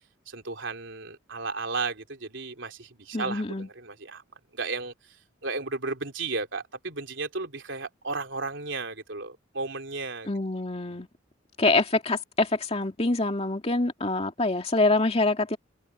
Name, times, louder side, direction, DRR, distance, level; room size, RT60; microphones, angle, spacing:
voice 1, 0.3-4.2 4.5-10.3, right 3 dB, 65° right, 3.5 m, -34 dB
voice 2, 3.1-3.7 10.2-11.1 11.6-15.6, left 2 dB, 30° left, 2.2 m, -25 dB
head